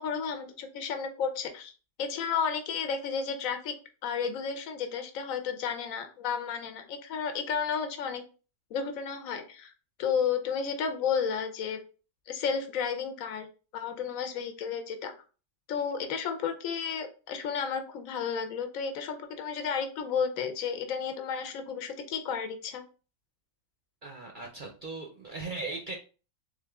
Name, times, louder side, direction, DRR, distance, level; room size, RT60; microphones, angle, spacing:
voice 1, 0.0-1.7 2.0-3.7 4.0-8.2 8.7-9.7 10.0-11.8 12.3-13.5 13.7-15.1 15.7-22.8, left 6 dB, 70° left, 7 dB, 1.1 m, -32 dB
voice 2, 24.0-26.0, right 3 dB, 50° right, 2 dB, 0.6 m, -38 dB
3.8 x 3.4 x 3.4 m, 0.35 s
omnidirectional pair, 1.5 m